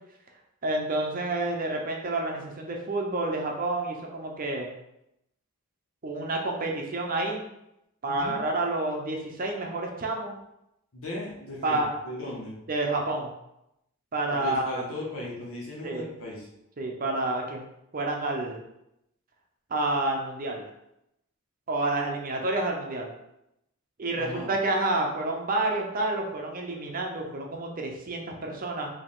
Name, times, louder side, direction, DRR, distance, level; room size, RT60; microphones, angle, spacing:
voice 1, 0.6-4.7 6.0-7.4 8.0-10.3 11.6-11.9 12.7-13.3 14.1-14.8 15.8-16.1 16.8-17.6 17.9-18.6 19.7-20.6 21.7-23.1 24.0-28.9, right 2 dB, 40° right, 1 dB, 0.7 m, -29 dB
voice 2, 8.1-8.4 10.9-12.6 14.3-16.5 24.2-24.5, left 1 dB, 60° left, -4 dB, 1.5 m, -37 dB
4.8 x 2.8 x 3.7 m, 0.83 s
head